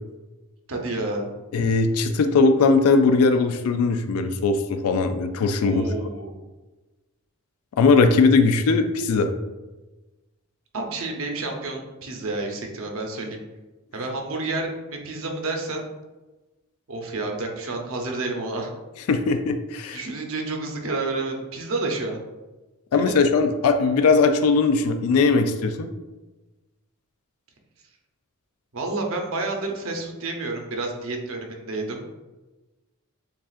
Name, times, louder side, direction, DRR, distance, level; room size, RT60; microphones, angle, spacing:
voice 1, 0.7-1.3 5.6-6.4 10.7-13.4 13.9-15.8 16.9-18.7 19.9-22.2 22.9-23.2 28.7-32.0, right 2 dB, 65° right, 2 dB, 0.7 m, -30 dB
voice 2, 1.5-5.8 7.8-9.3 19.1-20.0 22.9-25.9, left 4 dB, 80° left, 7 dB, 0.4 m, -19 dB
7.0 x 2.4 x 2.4 m, 1.1 s
head